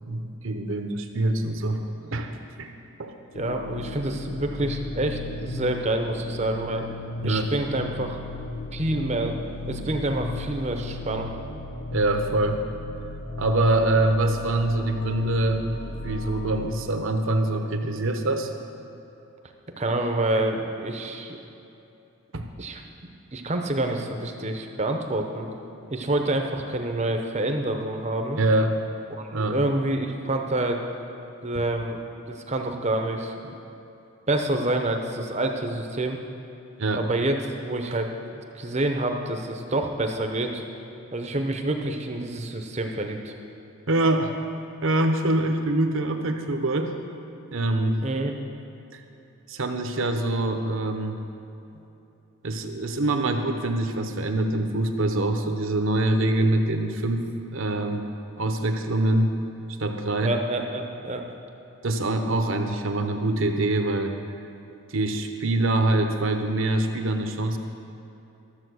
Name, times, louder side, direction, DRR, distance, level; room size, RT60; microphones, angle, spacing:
voice 1, 0.0-2.3 2.6-2.7 3.0-3.1 7.2-7.5 11.9-12.6 13.4-15.6 16.0-18.5 22.3-22.5 28.4-28.8 29.3-29.6 36.8-37.0 43.9-44.3 44.8-46.9 47.5-48.0 48.9-49.0 49.5-51.2 52.4-58.1 58.4-59.3 59.8-60.3 61.8-64.2 64.9-67.6, right 2 dB, 60° right, 5 dB, 0.9 m, -24 dB
sound 1, 3.3-16.8, left 2 dB, 60° left, 0.9 m, -36 dB
voice 2, 3.3-6.9 7.2-8.2 8.7-9.4 9.7-11.3 19.8-21.4 22.6-22.8 23.3-25.5 25.9-28.4 29.1-30.8 31.4-32.0 32.3-33.5 34.3-36.2 36.9-38.1 38.5-40.6 41.1-43.3 48.0-48.3 60.2-61.2, right 1 dB, 30° right, 4 dB, 0.7 m, -27 dB
13.0 x 7.4 x 6.2 m, 2.8 s
head